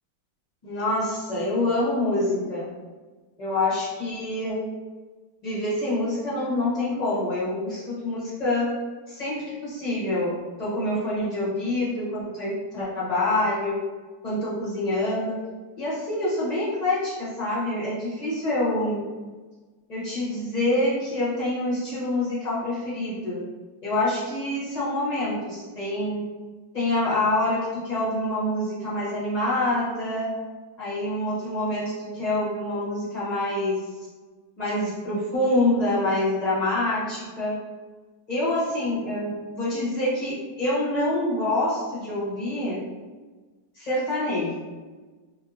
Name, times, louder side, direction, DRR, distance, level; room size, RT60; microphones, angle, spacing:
voice 1, 0.6-2.7 3.4-4.6 5.4-8.7 9.1-10.3 10.6-13.8 14.2-15.4 15.8-19.0 19.9-23.4 23.8-26.2 26.7-30.3 30.8-33.9 34.6-37.6 38.3-42.8 43.7-44.5, left 1 dB, 30° left, -10 dB, 0.8 m, -26 dB
3.3 x 2.7 x 2.4 m, 1.3 s
omnidirectional pair, 1.9 m